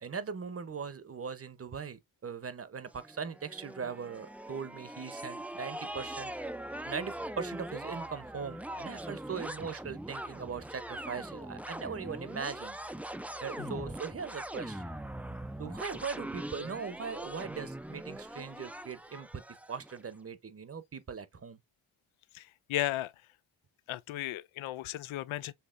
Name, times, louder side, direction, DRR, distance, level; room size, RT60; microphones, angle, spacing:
voice 1, 0.0-6.3 6.8-12.8 13.4-14.8 15.6-19.4 19.7-21.6, right 6 dB, 30° right, 0.9 m, -40 dB
sound 1, 2.9-20.0, right 1 dB, 5° right, 0.4 m, -42 dB
voice 2, 22.3-23.1 23.9-25.5, left 15 dB, 75° left, 0.5 m, -35 dB
6.7 x 2.8 x 2.5 m
cardioid pair, 50°, 49 cm